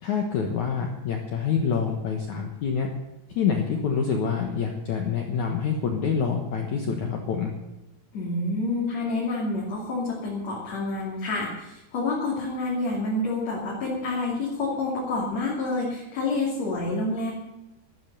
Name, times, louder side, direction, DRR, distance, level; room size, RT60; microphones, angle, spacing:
voice 1, 0.0-2.9 3.4-7.5, left 6 dB, 60° left, 2 dB, 2.2 m, -26 dB
voice 2, 8.1-17.3, left 2 dB, 45° left, -4 dB, 3.4 m, -28 dB
13.0 x 12.5 x 6.7 m, 0.98 s
omnidirectional pair, 4.7 m